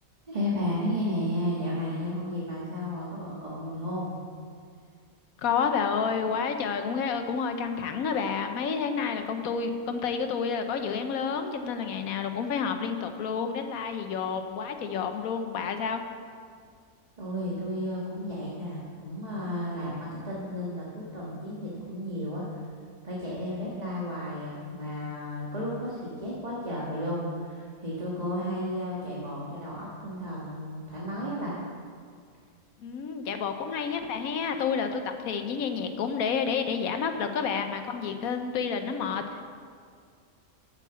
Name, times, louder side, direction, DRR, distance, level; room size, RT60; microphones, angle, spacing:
voice 1, 0.3-4.2 17.2-22.4 23.0-31.6, equal, 30° right, -6 dB, 1.6 m, -33 dB
voice 2, 5.4-16.0 32.8-39.4, left 6 dB, 85° left, 7 dB, 1.2 m, -30 dB
8.4 x 7.3 x 7.0 m, 2.1 s
omnidirectional pair, 1.4 m